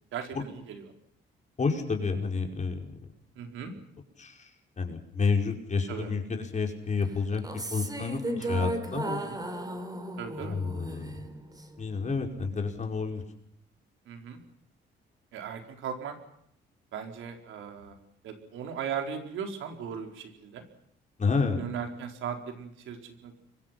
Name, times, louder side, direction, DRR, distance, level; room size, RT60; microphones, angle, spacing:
voice 1, 0.1-0.9 3.4-3.7 5.9-6.1 8.2-8.5 9.2-9.4 10.2-10.6 14.1-14.4 15.3-16.2 16.9-18.0 18.2-20.6 21.6-23.4, right 7 dB, 80° right, 5 dB, 4.5 m, -38 dB
voice 2, 1.6-2.8 4.2-4.3 4.8-7.4 7.7-9.3 10.4-11.1 11.8-13.2 21.2-21.6, left 4 dB, 35° left, 3 dB, 5.4 m, -29 dB
sound 1, 7.3-11.8, right 1 dB, 20° right, 3.5 m, -35 dB
28.0 x 24.0 x 6.0 m, 0.72 s
cardioid pair, 90°, 20 cm